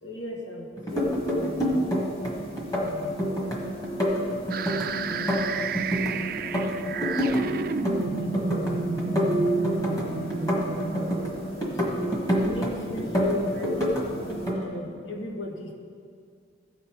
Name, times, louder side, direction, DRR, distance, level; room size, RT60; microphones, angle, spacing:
voice 1, 0.0-1.9 2.8-3.4 4.5-6.3 6.8-9.6 10.4-11.8 12.4-13.7 14.5-15.7, left 1 dB, 90° left, 0 dB, 1.5 m, -38 dB
sound 1, 0.8-2.3 2.6-3.6 3.8-6.1 6.4-7.4 7.7-8.7 9.0-11.3 11.6-12.7 13.0-14.0 14.3-14.6, equal, 20° left, 1.4 m, -27 dB
sound 2, 0.9-14.5, right 2 dB, 45° left, 3.0 m, -35 dB
sound 3, 4.5-12.4, right 5 dB, 50° right, 0.3 m, -32 dB
16.0 x 5.3 x 4.6 m, 2.2 s
head